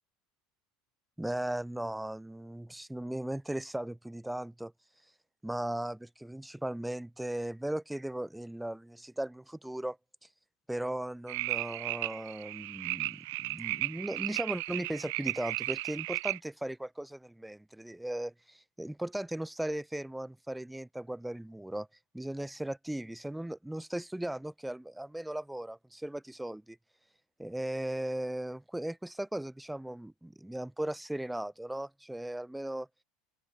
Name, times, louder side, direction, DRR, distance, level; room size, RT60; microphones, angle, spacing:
voice 1, 1.2-4.7 5.4-10.0 10.7-21.9 22.1-26.8 27.4-32.9, right 1 dB, 5° right, 3.8 m, -37 dB
sound 1, 11.3-16.4, right 23 dB, 80° right, 5.9 m, -35 dB
open air
supercardioid pair, 120°, 0 cm